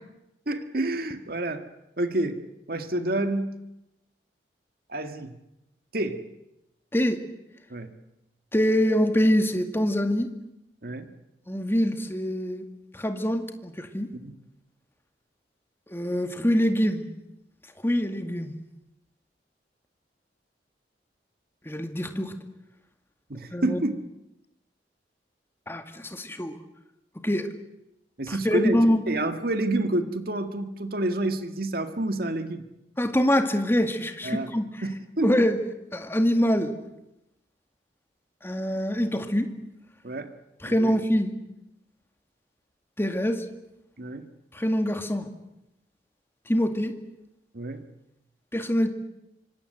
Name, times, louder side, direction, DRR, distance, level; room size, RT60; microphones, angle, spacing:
voice 1, 0.5-1.6 2.0-2.4 2.7-3.5 4.9-5.3 5.9-6.2 7.7-7.9 10.8-11.1 14.1-14.3 23.3-24.0 28.2-32.6 34.2-34.5 34.8-35.4 40.0-40.3 40.6-41.0 44.0-44.3 47.5-47.9, right 1 dB, 55° right, 8 dB, 1.9 m, -29 dB
voice 2, 8.5-10.3 11.5-12.6 12.9-14.1 15.9-17.0 17.8-18.5 21.7-22.3 23.5-23.8 25.7-26.5 27.2-27.5 28.3-29.0 33.0-34.6 35.2-35.6 35.9-36.7 38.4-39.5 40.6-41.3 43.0-43.4 44.5-45.3 46.5-46.9 48.5-48.9, equal, 15° left, 6 dB, 2.1 m, -24 dB
26.5 x 25.5 x 8.0 m, 0.90 s
head